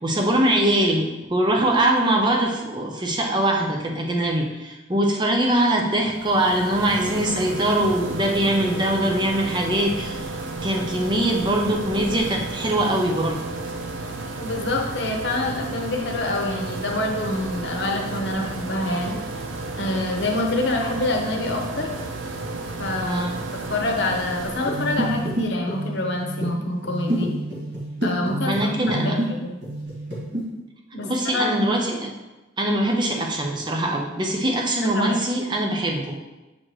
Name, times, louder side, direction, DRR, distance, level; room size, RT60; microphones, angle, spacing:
voice 1, 0.0-10.3 10.6-13.4 23.0-23.4 28.5-29.2 31.0-32.1 32.6-36.2, right 1 dB, 25° right, 1 dB, 0.7 m, -22 dB
sound 1, 6.1-25.5, right 2 dB, 80° right, 0.7 m, -33 dB
voice 2, 14.4-19.2 19.8-21.9 22.8-23.2 23.7-27.3 28.0-28.5 28.9-29.5 30.9-31.6 34.8-35.2, left 2 dB, 60° left, 0 dB, 1.0 m, -26 dB
sound 2, 24.6-29.3 29.6-30.4, right 1 dB, 55° right, 2.0 m, -28 dB
7.6 x 4.2 x 3.1 m, 1.1 s
head